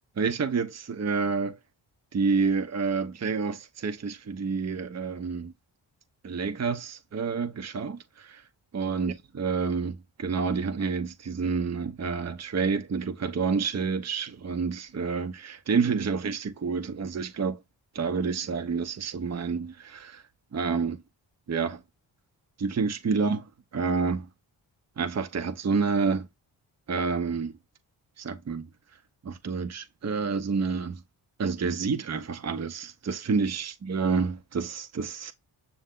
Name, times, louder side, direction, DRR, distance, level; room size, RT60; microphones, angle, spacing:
voice 1, 0.2-1.6 2.1-5.5 6.2-8.4 8.7-17.6 17.9-20.2 20.5-21.0 21.5-21.8 22.6-23.4 23.7-24.3 25.0-26.3 26.9-27.5 28.2-28.6 29.2-31.0 31.4-35.3, right 5 dB, 30° right, 0.8 m, -29 dB
6.2 x 2.2 x 3.7 m
supercardioid pair, 40°, 49 cm